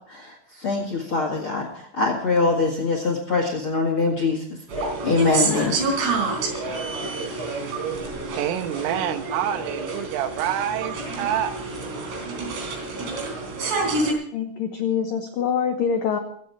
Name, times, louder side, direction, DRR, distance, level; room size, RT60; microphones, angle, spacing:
voice 1, 0.1-5.8, left 3 dB, 50° left, 2 dB, 1.6 m, -24 dB
sound 1, 4.7-14.1, right 3 dB, 60° right, 5.3 m, -28 dB
voice 2, 8.4-11.5, right 10 dB, 90° right, 9 dB, 3.7 m, -27 dB
voice 3, 14.3-16.2, left 7 dB, 90° left, 5 dB, 1.9 m, -24 dB
21.5 x 8.9 x 4.7 m, 0.64 s
omnidirectional pair, 5.7 m